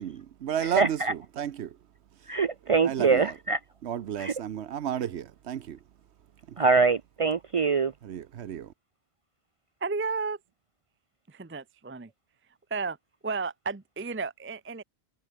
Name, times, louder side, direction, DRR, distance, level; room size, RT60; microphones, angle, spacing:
voice 1, 0.0-1.8 2.8-3.3 3.8-5.8 8.0-8.7, right 9 dB, 85° right, 1.1 m, -33 dB
voice 2, 0.7-1.1 2.3-3.6 4.2-4.3 6.6-7.9, right 4 dB, 55° right, 0.4 m, -24 dB
voice 3, 9.8-10.4 11.3-12.1 12.7-13.0 13.2-14.8, right 4 dB, 15° right, 0.6 m, -32 dB
omnidirectional pair, 1.1 m